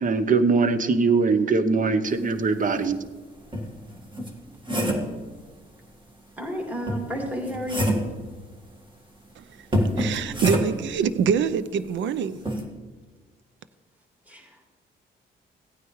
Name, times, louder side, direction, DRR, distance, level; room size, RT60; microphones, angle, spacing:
voice 1, 0.0-3.0, right 4 dB, 40° right, 0.8 m, -21 dB
sound 1, 2.9-3.0 3.5-5.2 6.9-8.2 9.7-10.9 12.5-12.7, equal, 25° right, 1.7 m, -26 dB
voice 2, 6.4-8.0 14.3-14.6, left 1 dB, 10° right, 2.3 m, -32 dB
voice 3, 9.9-12.4, right 7 dB, 70° right, 0.6 m, -25 dB
16.0 x 9.1 x 3.2 m
cardioid pair, 90°, 20 cm